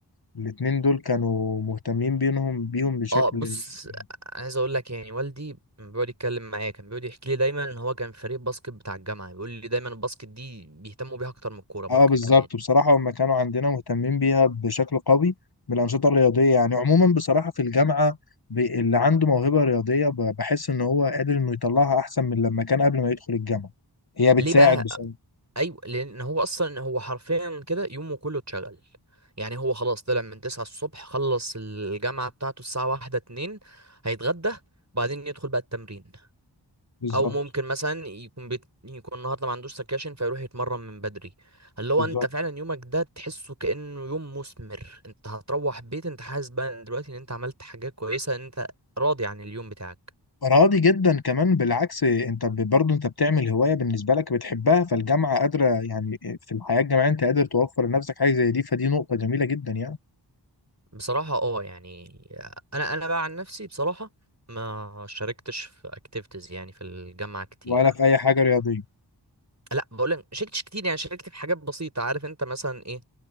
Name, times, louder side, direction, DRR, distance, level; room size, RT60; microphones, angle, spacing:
voice 1, 0.4-3.5 11.9-15.3 15.7-18.2 18.5-23.7 24.2-24.8 37.0-37.1 42.1-42.2 50.4-60.0 67.7-68.8, left 4 dB, 60° left, 1.3 m, -22 dB
voice 2, 3.1-4.0 4.3-12.0 24.4-24.8 25.5-28.8 29.4-34.6 34.9-36.0 37.1-41.3 41.8-48.7 49.0-49.9 60.9-64.1 64.5-67.9 69.7-73.0, right 2 dB, 40° right, 6.8 m, -30 dB
wide cardioid pair, 45°, 43 cm